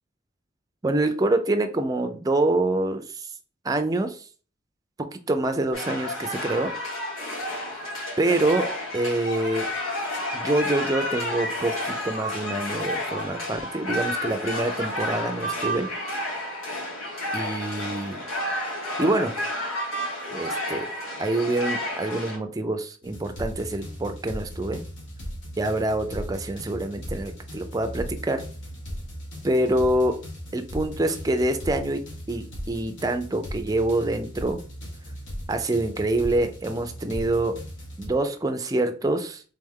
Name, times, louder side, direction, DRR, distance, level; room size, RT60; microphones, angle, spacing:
voice 1, 0.8-3.3 3.6-4.2 5.1-6.7 8.2-9.7 10.3-15.9 17.3-18.2 19.0-19.4 20.3-20.9 21.2-24.8 25.6-28.4 29.4-30.2 30.5-32.0 32.3-34.6 35.5-37.6 38.0-39.4, right 2 dB, 15° right, 7 dB, 0.4 m, -26 dB
sound 1, 5.7-22.4, left 1 dB, 90° left, 1.8 m, -31 dB
sound 2, 23.0-38.1, equal, 65° left, 1.3 m, -38 dB
3.5 x 3.2 x 3.6 m, 0.40 s
head